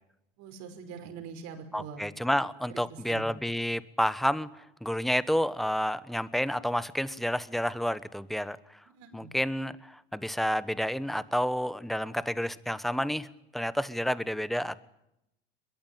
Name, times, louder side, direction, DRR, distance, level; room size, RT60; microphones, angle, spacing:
voice 1, 0.4-2.0 2.7-3.3 8.9-9.3, right 6 dB, 60° right, 7 dB, 5.5 m, -43 dB
voice 2, 1.7-8.6 9.1-13.3 13.5-14.8, equal, ahead, 16 dB, 1.1 m, -30 dB
22.5 x 22.5 x 9.3 m, 0.85 s
supercardioid pair, 100°, 30 cm